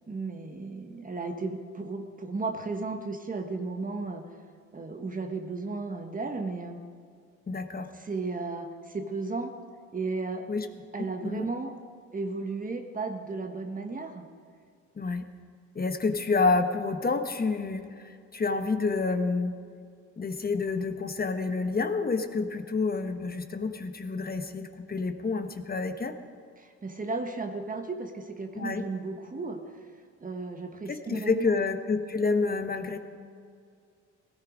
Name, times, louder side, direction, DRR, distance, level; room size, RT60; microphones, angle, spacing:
voice 1, 0.1-4.3 4.7-6.8 7.9-9.5 9.9-10.5 10.9-11.7 12.1-14.3 26.6-29.6 30.2-31.6, right 3 dB, 25° right, 5 dB, 1.3 m, -34 dB
voice 2, 7.5-7.9 10.5-10.7 11.2-11.5 15.0-15.2 15.7-19.5 20.2-26.2 28.5-28.9 30.9-33.0, left 4 dB, 30° left, 8 dB, 1.2 m, -28 dB
17.0 x 15.0 x 5.1 m, 2.3 s
cardioid pair, 90°, 30 cm